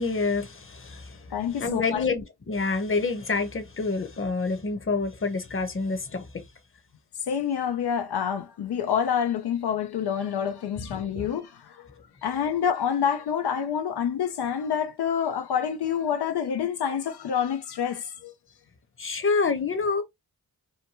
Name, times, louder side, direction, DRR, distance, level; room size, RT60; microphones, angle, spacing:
voice 1, 0.0-6.4 10.8-11.3 19.0-20.0, left 4 dB, 35° left, 0.8 m, -28 dB
voice 2, 1.3-2.1 7.3-11.9 12.2-18.3, left 8 dB, 90° left, 0.5 m, -27 dB
2.8 x 2.2 x 2.8 m
cardioid pair, 50°, 38 cm